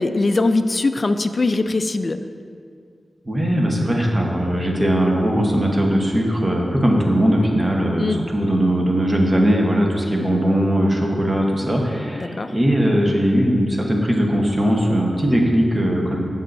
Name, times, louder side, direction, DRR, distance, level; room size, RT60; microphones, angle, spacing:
voice 1, 0.0-2.2 8.0-8.2 12.2-12.5, left 3 dB, 35° left, 9 dB, 0.3 m, -21 dB
voice 2, 3.3-16.2, equal, 25° right, 0 dB, 1.1 m, -19 dB
15.5 x 5.4 x 2.6 m, 2.3 s
wide cardioid pair, 130°, 0 cm